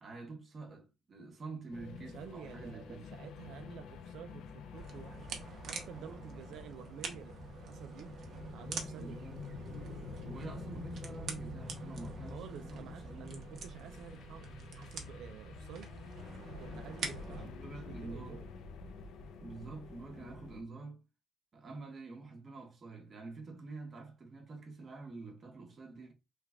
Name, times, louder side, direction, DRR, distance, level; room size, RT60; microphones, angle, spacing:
voice 1, 0.0-3.0 8.9-9.4 10.1-13.2 17.3-18.4 19.4-21.0 21.5-26.1, right 3 dB, 40° right, 1.0 m, -47 dB
sound 1, 1.7-20.6, left 5 dB, 85° left, 0.5 m, -49 dB
voice 2, 2.1-8.1 8.5-9.2 12.3-16.2 16.6-18.4, right 9 dB, 85° right, 0.4 m, -51 dB
sound 2, 4.8-17.4, right 4 dB, 60° right, 0.8 m, -45 dB
3.2 x 2.3 x 3.4 m
cardioid pair, 130°, 0 cm